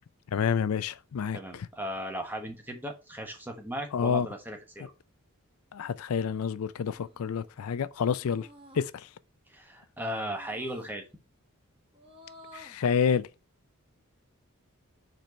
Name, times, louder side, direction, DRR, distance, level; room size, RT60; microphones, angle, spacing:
voice 1, 0.3-1.7 3.9-4.3 5.7-8.5 8.7-9.1 12.5-13.3, left 7 dB, 80° left, 0.4 m, -28 dB
voice 2, 1.3-4.9 9.5-11.0, equal, 10° right, 1.2 m, -37 dB
sound 1, 6.8-7.3 8.2-8.9 10.3-10.9 11.9-12.9, equal, 25° right, 1.4 m, -52 dB
5.3 x 4.4 x 5.2 m
head